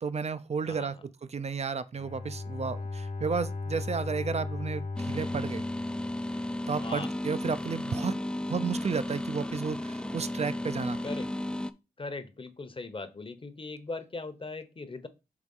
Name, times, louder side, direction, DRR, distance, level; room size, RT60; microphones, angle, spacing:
voice 1, 0.0-0.9 1.3-5.6 6.7-8.1 8.4-11.0, right 5 dB, 45° right, 0.6 m, -32 dB
voice 2, 0.7-1.0 6.8-7.1 11.0-11.3 12.0-15.1, left 3 dB, 35° left, 0.9 m, -39 dB
Bowed string instrument, 1.9-6.7, left 3 dB, 65° left, 1.2 m, -37 dB
sound 1, 5.0-11.7, left 1 dB, 5° left, 0.4 m, -34 dB
4.9 x 3.5 x 5.4 m
cardioid pair, 65°, 15 cm